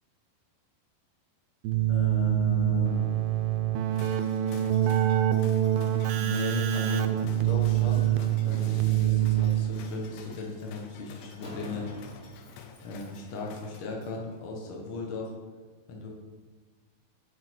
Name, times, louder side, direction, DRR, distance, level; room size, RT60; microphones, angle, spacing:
Keyboard (musical), 1.6-10.0, right 12 dB, 85° right, 2.4 m, -25 dB
voice 1, 1.9-3.1 4.8-5.0 6.1-8.1 8.4-11.8 12.8-15.3 15.9-16.1, left 4 dB, 70° left, -1 dB, 1.2 m, -36 dB
sound 1, 3.9-14.3, left 6 dB, 85° left, 2.6 m, -49 dB
Slam, 5.8-13.3, left 1 dB, 40° left, 1.6 m, -50 dB
7.7 x 6.4 x 4.6 m, 1.4 s
omnidirectional pair, 4.2 m